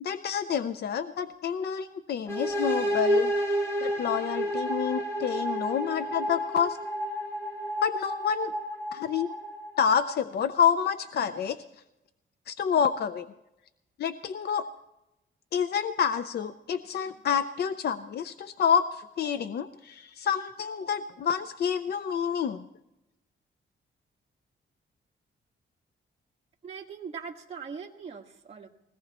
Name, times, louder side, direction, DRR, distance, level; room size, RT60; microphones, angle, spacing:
voice 1, 0.0-3.3 3.8-6.8 7.8-8.5 8.9-9.3 9.8-11.6 12.5-13.3 14.0-14.6 15.5-22.7, left 7 dB, 55° left, 11 dB, 0.5 m, -28 dB
sound 1, 2.3-9.9, equal, 15° left, 1.8 m, -30 dB
voice 2, 26.6-28.7, right 6 dB, 30° right, -1 dB, 1.6 m, -41 dB
21.0 x 17.5 x 3.0 m, 0.91 s
wide cardioid pair, 175°, 20 cm